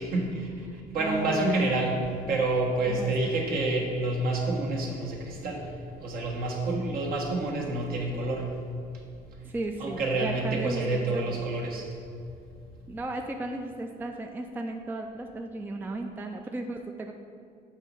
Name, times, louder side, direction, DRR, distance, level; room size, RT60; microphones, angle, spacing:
voice 1, 0.0-5.7 6.0-8.5 9.8-11.8, right 2 dB, 65° right, -2 dB, 1.3 m, -28 dB
voice 2, 0.7-1.8 2.9-3.3 6.8-7.0 9.4-11.4 12.9-17.1, right 2 dB, 10° right, 3 dB, 0.3 m, -35 dB
7.3 x 3.0 x 5.4 m, 2.3 s
cardioid pair, 110°, 17 cm